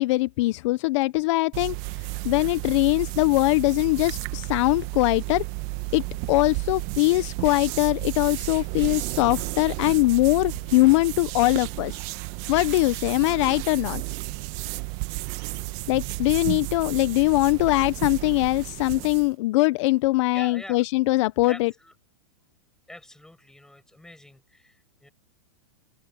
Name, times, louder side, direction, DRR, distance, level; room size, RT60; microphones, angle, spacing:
voice 1, 0.0-1.8 2.2-5.5 5.9-12.0 12.5-14.0 15.9-21.7, left 21 dB, 55° left, 0.9 m, -22 dB
sound 1, 1.5-19.3, right 24 dB, 45° right, 1.6 m, -33 dB
voice 2, 20.3-20.8 21.5-21.9 22.9-25.1, left 1 dB, 5° left, 5.7 m, -44 dB
open air
hypercardioid pair, 125°, 18 cm